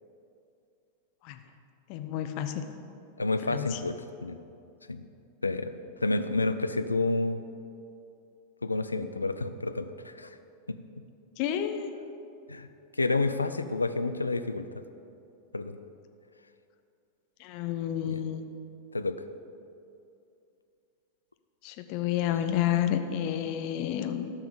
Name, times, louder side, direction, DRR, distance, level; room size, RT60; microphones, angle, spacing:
voice 1, 1.9-2.6 3.4-3.8 11.4-12.0 17.4-18.4 21.6-24.3, left 10 dB, 45° left, 8 dB, 0.8 m, -30 dB
voice 2, 3.2-4.4 4.9-5.0 5.4-5.7 6.0-7.4 8.6-10.3 10.7-10.8 12.5-12.7 13.0-14.7 15.5-15.8 18.0-18.2 18.9-19.2, left 3 dB, 80° left, 10 dB, 0.5 m, -29 dB
14.0 x 5.8 x 6.7 m, 2.6 s
figure-of-eight pair, 90°, 0 cm